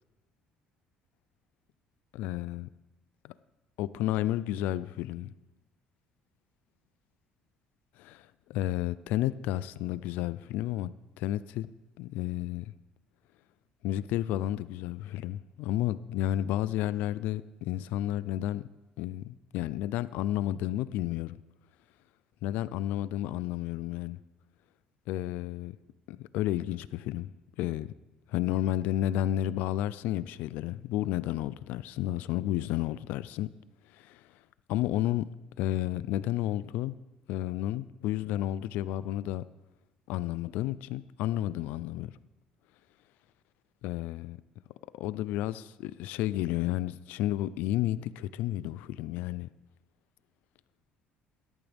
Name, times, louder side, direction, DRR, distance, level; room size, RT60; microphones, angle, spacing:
voice 1, 2.1-2.7 3.2-3.3 3.8-5.3 8.0-11.7 12.0-12.7 13.8-18.7 19.0-21.4 22.4-24.2 25.1-25.8 26.1-27.3 27.6-27.9 28.3-33.5 33.9-34.2 34.7-35.3 35.6-37.0 37.3-39.4 40.1-42.1 43.8-44.4 44.9-49.5, left 13 dB, 80° left, 0.4 m, -31 dB
17.5 x 12.5 x 3.5 m
cardioid pair, 175°, 3 cm